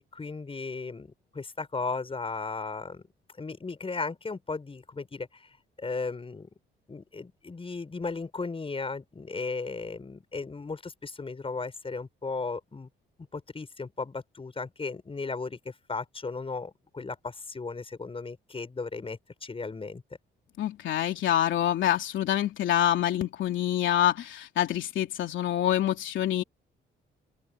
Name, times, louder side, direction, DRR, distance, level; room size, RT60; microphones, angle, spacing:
voice 1, 0.0-3.0 3.4-5.5 5.8-6.5 6.9-12.9 13.3-20.0, left 4 dB, 30° left, 6.6 m, -36 dB
voice 2, 20.6-26.4, left 11 dB, 75° left, 3.3 m, -26 dB
open air
cardioid pair, 90°, 20 cm